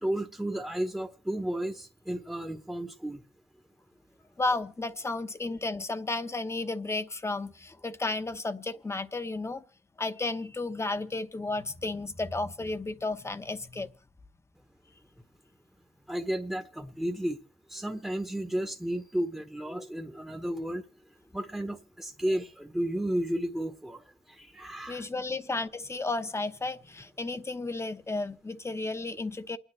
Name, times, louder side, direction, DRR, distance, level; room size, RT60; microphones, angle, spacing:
voice 1, 0.0-3.2 16.1-17.4 17.7-20.8 21.3-25.0, right 1 dB, 5° right, 1.1 m, -33 dB
voice 2, 4.4-9.6 10.0-13.9 24.9-29.6, left 2 dB, 25° left, 0.9 m, -33 dB
28.5 x 10.0 x 3.2 m
wide cardioid pair, 110°, 10 cm